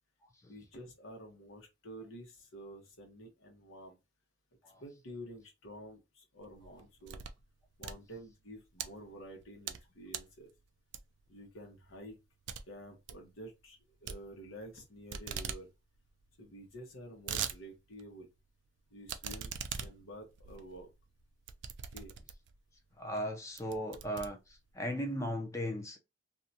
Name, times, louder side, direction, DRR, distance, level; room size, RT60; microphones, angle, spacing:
voice 1, 0.4-4.0 4.8-7.3 7.8-10.5 11.3-12.2 12.7-15.7 16.4-18.3 18.9-20.9 21.9-22.1, equal, 75° left, 1.0 m, -50 dB
sound 1, 6.5-7.4 7.7-8.9 9.4-9.8 10.1-10.4 10.9-11.3 11.7-11.8 12.1-12.2 12.5-12.6 12.9-13.2 14.1-14.8 15.1-15.6 16.0-16.1 16.2-16.3 16.9-17.6 18.0-18.1 19.1-22.6 23.1-23.3 23.6-24.8, right 8 dB, 60° right, 0.4 m, -41 dB
voice 2, 23.0-26.0, equal, 15° left, 0.5 m, -37 dB
2.7 x 2.2 x 2.7 m
head